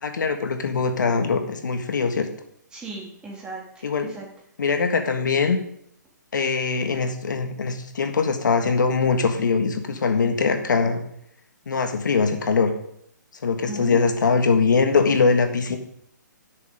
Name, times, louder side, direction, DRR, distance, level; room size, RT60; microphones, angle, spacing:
voice 1, 0.0-2.3 3.8-4.1 4.6-5.6 6.3-11.0 11.7-12.7 13.4-15.8, left 5 dB, 75° left, 6 dB, 1.6 m, -22 dB
voice 2, 2.7-4.3 13.7-14.1, right 2 dB, 10° right, -2 dB, 2.0 m, -37 dB
11.5 x 6.7 x 5.0 m, 0.70 s
hypercardioid pair, 165°, 10 cm